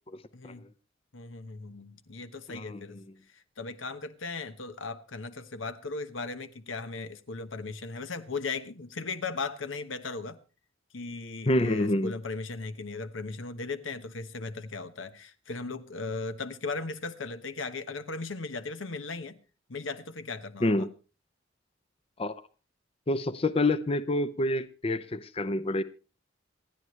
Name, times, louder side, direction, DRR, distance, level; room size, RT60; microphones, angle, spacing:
voice 1, 0.3-0.6 1.1-3.0 3.3-10.4 10.9-19.4 19.7-20.9, left 4 dB, 85° left, 1.2 m, -37 dB
voice 2, 2.5-2.8 11.5-12.1 20.6-20.9 22.2-22.3 23.1-25.8, left 1 dB, 30° left, 0.6 m, -27 dB
27.0 x 9.7 x 3.2 m
head